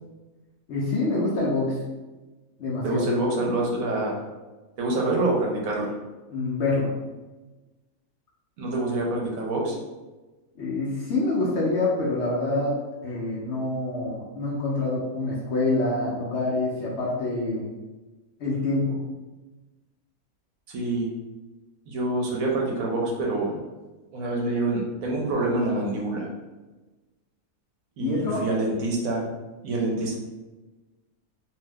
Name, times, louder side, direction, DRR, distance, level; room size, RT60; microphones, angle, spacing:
voice 1, 0.7-1.8 2.6-3.0 6.3-6.9 10.6-17.7 18.4-19.0 28.0-28.4, left 2 dB, 65° left, -4 dB, 0.7 m, -26 dB
voice 2, 2.8-4.2 4.8-5.9 8.6-9.8 20.7-21.1 21.9-23.6 24.1-26.3 28.0-29.2 29.6-30.2, right 2 dB, 75° right, -1 dB, 1.0 m, -26 dB
2.7 x 2.0 x 3.4 m, 1.2 s
omnidirectional pair, 1.5 m